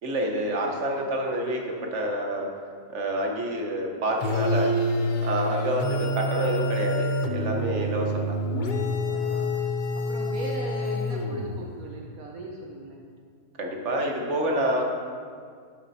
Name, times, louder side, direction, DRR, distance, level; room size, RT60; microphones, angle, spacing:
voice 1, 0.0-2.5 2.9-4.7 5.2-8.4 13.6-14.8, right 1 dB, 50° right, 1 dB, 1.6 m, -28 dB
sound 1, 4.2-11.7, left 1 dB, 50° left, 0.6 m, -27 dB
voice 2, 9.1-9.6 9.9-13.0, right 2 dB, 65° right, -1 dB, 1.3 m, -39 dB
12.5 x 7.6 x 4.3 m, 2.1 s
omnidirectional pair, 1.7 m